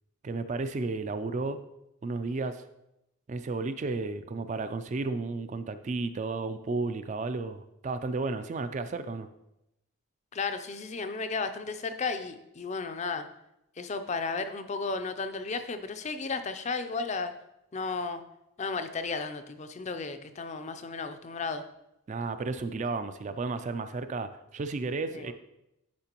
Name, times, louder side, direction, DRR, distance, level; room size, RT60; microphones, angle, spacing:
voice 1, 0.2-1.6 2.0-2.6 3.3-9.3 22.1-25.3, right 3 dB, 35° right, 10 dB, 0.3 m, -33 dB
voice 2, 10.3-13.2 13.8-17.3 17.7-18.2 18.6-21.6 25.1-25.3, left 4 dB, 30° left, 9 dB, 0.4 m, -34 dB
10.5 x 5.1 x 2.9 m, 0.87 s
head